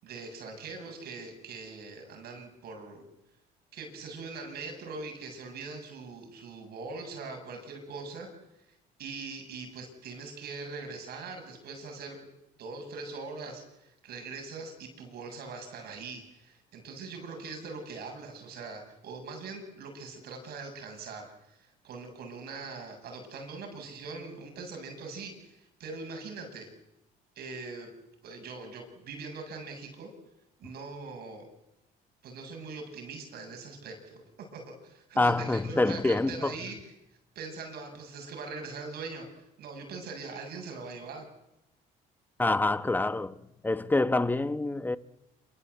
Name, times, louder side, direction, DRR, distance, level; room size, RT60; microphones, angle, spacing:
voice 1, 0.0-3.1 3.7-8.3 9.0-12.3 12.6-26.7 27.4-27.9 28.2-30.1 30.6-31.5 32.2-36.9 37.3-41.3, right 4 dB, 70° right, 7.8 m, -42 dB
voice 2, 35.2-36.5 42.4-45.0, left 2 dB, 10° left, 1.3 m, -26 dB
27.0 x 24.5 x 8.3 m
cardioid pair, 110°, 17 cm